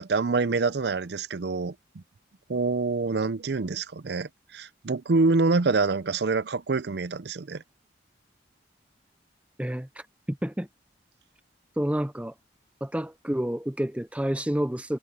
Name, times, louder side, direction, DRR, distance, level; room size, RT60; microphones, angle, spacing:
voice 1, 0.0-2.0 2.5-7.6, right 3 dB, 65° right, 0.6 m, -26 dB
voice 2, 9.6-10.7 11.8-12.3 12.8-15.0, equal, 5° right, 0.5 m, -29 dB
head